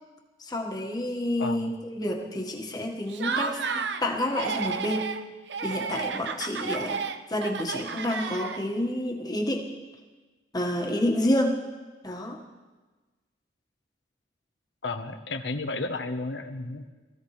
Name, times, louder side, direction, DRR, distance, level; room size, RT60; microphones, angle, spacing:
voice 1, 0.4-5.1 5.6-9.7 10.5-11.6 12.0-12.4, left 1 dB, 20° left, 0 dB, 1.6 m, -29 dB
voice 2, 1.4-1.7 14.8-16.9, left 3 dB, 75° left, 6 dB, 1.1 m, -33 dB
Laughter, 3.1-4.0 4.3-5.2 5.5-8.8, right 5 dB, 70° right, 0.7 m, -32 dB
24.0 x 15.0 x 3.3 m, 1.3 s
head